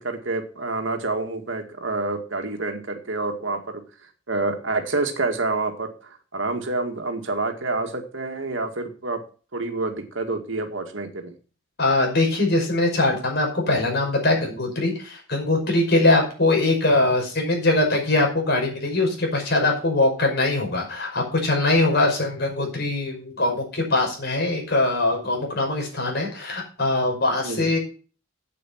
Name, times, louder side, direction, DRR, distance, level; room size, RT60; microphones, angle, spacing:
voice 1, 0.0-3.8 4.3-9.2 9.5-11.4 27.4-27.7, right 3 dB, 80° right, 6 dB, 2.0 m, -28 dB
voice 2, 11.8-27.8, left 2 dB, 55° left, 0 dB, 5.5 m, -22 dB
8.6 x 8.5 x 5.8 m, 0.37 s
head